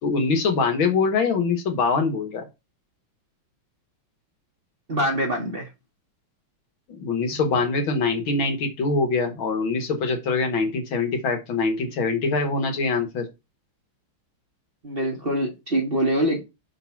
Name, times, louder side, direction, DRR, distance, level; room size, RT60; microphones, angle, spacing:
voice 1, 0.0-2.4 6.9-13.3, left 4 dB, 75° left, 2.2 m, -23 dB
voice 2, 4.9-5.7 14.8-16.4, right 1 dB, 30° right, 1.9 m, -24 dB
6.2 x 3.9 x 5.8 m
omnidirectional pair, 2.2 m